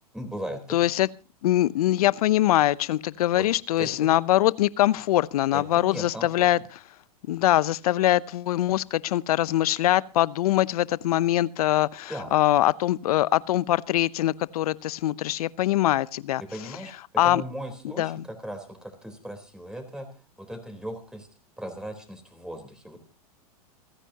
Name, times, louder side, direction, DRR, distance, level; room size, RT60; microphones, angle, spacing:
voice 1, 0.1-0.8 3.3-3.5 3.8-4.1 5.5-6.5 12.1-12.4 16.4-20.1 20.4-21.3 21.6-23.0, equal, 5° right, 4.0 m, -38 dB
voice 2, 0.7-1.1 1.4-6.6 7.3-16.4 17.2-17.4 18.0-18.2, left 14 dB, 70° left, 0.8 m, -23 dB
29.0 x 10.0 x 2.9 m
hypercardioid pair, 110°, 20 cm